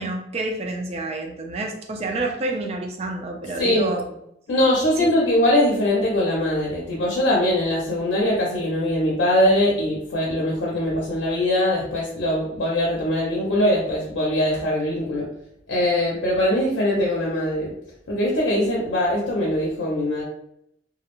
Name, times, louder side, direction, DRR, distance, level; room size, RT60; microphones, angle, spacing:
voice 1, 0.0-4.1 5.0-5.1, right 2 dB, 35° right, 2 dB, 0.4 m, -28 dB
voice 2, 4.5-15.3 15.7-17.7 18.1-20.2, left 1 dB, 85° left, -4 dB, 0.6 m, -22 dB
2.4 x 2.0 x 2.9 m, 0.75 s
head